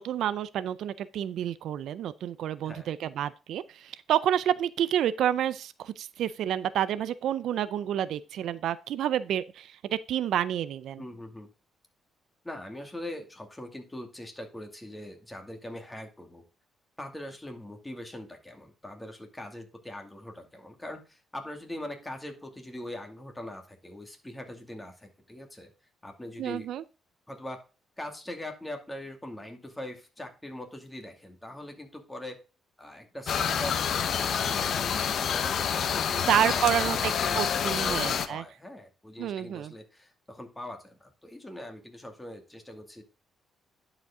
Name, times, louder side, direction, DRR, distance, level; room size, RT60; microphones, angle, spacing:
voice 1, 0.0-11.0 26.4-26.8 36.3-38.4 39.2-39.7, right 10 dB, 75° right, 0.4 m, -29 dB
voice 2, 11.0-11.5 12.4-16.4 17.0-25.7 26.0-26.7 27.3-27.6 28.0-32.4 32.8-33.8 34.3-37.4 37.8-43.0, left 1 dB, 10° left, 2.3 m, -42 dB
sound 1, 33.3-38.3, left 7 dB, 60° left, 0.9 m, -28 dB
10.5 x 5.1 x 3.7 m
cardioid pair, 90°, 0 cm